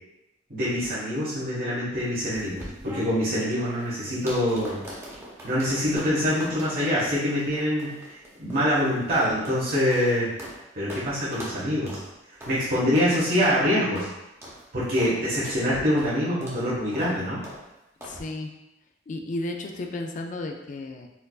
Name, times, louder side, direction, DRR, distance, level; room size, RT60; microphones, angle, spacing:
voice 1, 0.5-4.8 5.4-10.3 10.7-12.0 12.5-14.1 14.7-17.4, equal, 50° right, -10 dB, 1.1 m, -25 dB
sound 1, 2.3-10.6 10.9-11.0 11.3-11.6 11.9-12.0 12.4-12.6 12.9-13.1 13.4-13.6 13.9-14.1 14.4-14.6 15.0-15.1 15.4-15.6 16.0-16.1 16.4-16.6 16.9-17.1 17.4-17.6 18.0-18.2, equal, 15° right, 0.8 m, -41 dB
voice 2, 18.0-18.6 19.1-21.1, left 2 dB, 40° left, 4 dB, 0.4 m, -33 dB
4.4 x 2.5 x 2.3 m, 0.94 s
head